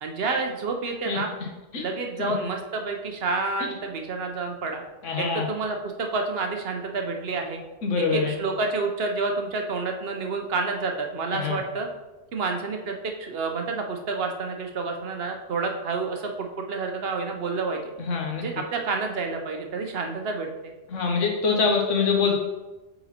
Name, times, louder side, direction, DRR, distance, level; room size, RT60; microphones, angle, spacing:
voice 1, 0.0-1.3 1.8-4.8 5.2-7.6 8.1-11.9 12.3-17.8 18.4-20.5, right 3 dB, 60° right, 3 dB, 0.8 m, -29 dB
voice 2, 5.0-5.5 7.8-8.3 11.3-11.6 18.0-18.4 20.9-22.4, left 5 dB, 80° left, 1 dB, 1.3 m, -24 dB
5.6 x 4.0 x 4.2 m, 1.1 s
omnidirectional pair, 1.3 m